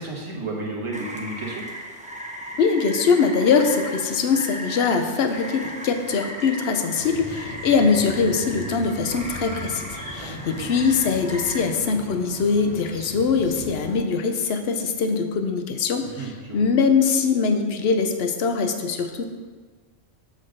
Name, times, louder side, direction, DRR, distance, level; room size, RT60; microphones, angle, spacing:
voice 1, 0.0-1.6 10.2-10.8 16.2-16.6, right 2 dB, 25° right, -2 dB, 1.3 m, -33 dB
Rain, 0.9-11.6, equal, 10° right, 0.5 m, -37 dB
voice 2, 2.6-19.3, left 5 dB, 60° left, 7 dB, 0.9 m, -22 dB
Morning Ambience city, 7.0-14.0, left 1 dB, 35° left, 1.4 m, -38 dB
7.6 x 3.9 x 6.4 m, 1.5 s
omnidirectional pair, 1.3 m